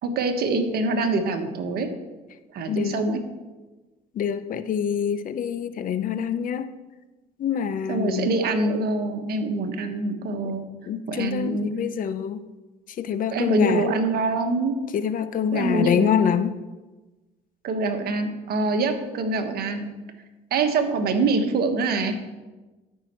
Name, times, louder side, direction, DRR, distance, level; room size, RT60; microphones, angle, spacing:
voice 1, 0.0-1.9 2.5-3.2 7.9-10.7 11.1-11.9 13.3-14.7 15.5-16.3 17.6-19.9 20.5-22.2, right 3 dB, 60° right, 6 dB, 1.3 m, -25 dB
voice 2, 2.7-3.0 4.2-6.7 7.4-8.4 10.9-12.4 13.0-13.8 14.9-16.5, left 8 dB, 50° left, 13 dB, 0.6 m, -26 dB
13.0 x 5.7 x 4.4 m, 1.2 s
supercardioid pair, 90°, 18 cm